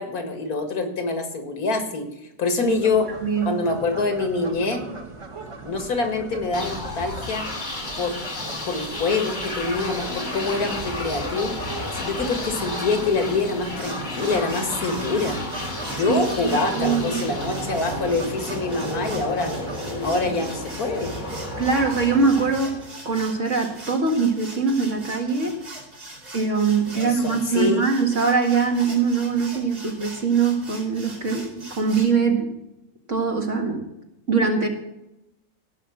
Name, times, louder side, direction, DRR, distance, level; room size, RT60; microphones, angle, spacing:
voice 1, 0.0-2.1 2.4-3.1 3.5-4.8 5.6-7.5 8.0-8.2 8.7-15.4 15.9-19.5 20.0-21.1 27.0-27.8, left 3 dB, 75° left, 5 dB, 2.3 m, -25 dB
sound 1, 2.7-19.8, right 3 dB, 25° right, 0.8 m, -38 dB
voice 2, 3.2-3.6 16.1-17.2 21.6-22.8 23.1-25.6 26.3-32.5 33.1-33.9 34.3-34.7, right 5 dB, 55° right, 3 dB, 2.2 m, -22 dB
sound 2, 6.5-23.3, left 2 dB, 30° left, 2.3 m, -32 dB
sound 3, 13.8-32.1, right 1 dB, 85° right, 5.0 m, -41 dB
17.0 x 5.7 x 7.5 m, 0.89 s
omnidirectional pair, 1.6 m